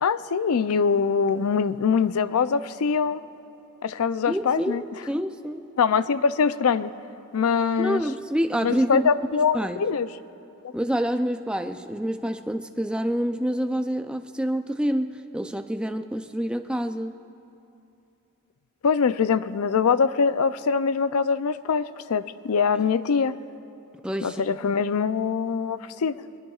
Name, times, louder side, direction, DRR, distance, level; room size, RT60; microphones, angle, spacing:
voice 1, 0.0-3.2 3.8-4.8 5.8-6.9 7.3-8.0 8.6-10.1 18.8-23.3 24.2-26.2, left 6 dB, 75° left, 14 dB, 0.4 m, -23 dB
voice 2, 4.3-5.7 7.8-9.1 9.5-9.8 10.7-17.1 22.7-22.9 24.0-24.5, equal, 5° right, 7 dB, 0.4 m, -27 dB
22.5 x 21.5 x 2.4 m, 2.8 s
head